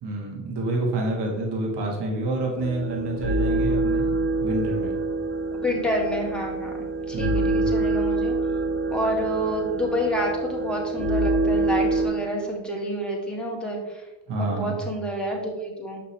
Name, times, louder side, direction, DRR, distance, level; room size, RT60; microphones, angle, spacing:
voice 1, 0.0-4.9 7.1-7.7 14.3-14.8, right 2 dB, 70° right, -1 dB, 1.7 m, -28 dB
sound 1, 2.6-12.1, right 2 dB, 30° right, 2.0 m, -26 dB
voice 2, 5.5-8.4 8.9-14.0 14.4-16.1, equal, ahead, -2 dB, 2.4 m, -28 dB
6.2 x 5.8 x 3.3 m, 1.1 s
supercardioid pair, 50°, 42 cm